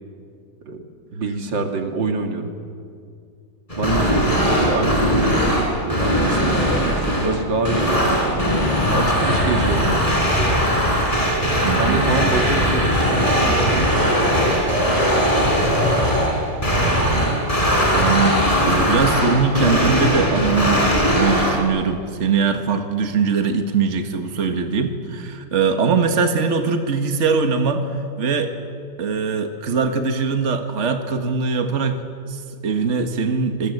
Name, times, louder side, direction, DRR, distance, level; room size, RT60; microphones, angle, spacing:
voice 1, 1.1-2.5 3.7-8.4 8.9-10.6 11.3-14.7, right 3 dB, 85° right, 4 dB, 2.8 m, -26 dB
sound 1, 3.7-21.6, equal, 20° left, 4.5 m, -19 dB
voice 2, 11.6-12.1 16.7-17.5 17.9-28.5 29.0-32.0 32.3-33.7, right 5 dB, 40° right, 6 dB, 1.8 m, -22 dB
26.5 x 21.5 x 8.0 m, 2.3 s
omnidirectional pair, 2.0 m